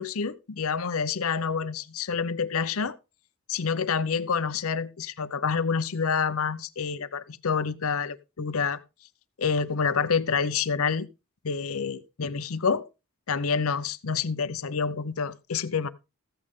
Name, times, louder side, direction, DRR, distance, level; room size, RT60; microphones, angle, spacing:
voice 1, 0.0-3.0 3.5-8.8 9.4-11.1 11.4-12.9 13.3-15.9, left 5 dB, 90° left, 0.7 m, -28 dB
14.5 x 8.6 x 3.7 m
head